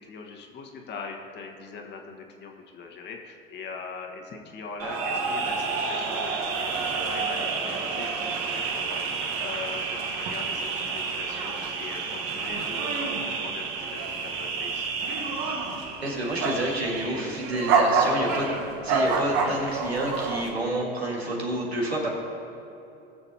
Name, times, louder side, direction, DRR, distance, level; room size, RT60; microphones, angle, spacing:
voice 1, 0.0-13.6 13.9-14.9, left 4 dB, 35° left, 2 dB, 1.5 m, -41 dB
sound 1, 4.8-20.5, right 4 dB, 45° right, 1.3 m, -28 dB
voice 2, 16.0-18.5 18.8-22.1, right 1 dB, 90° right, -2 dB, 1.9 m, -29 dB
19.5 x 6.9 x 2.8 m, 2.8 s
figure-of-eight pair, 75°, 31 cm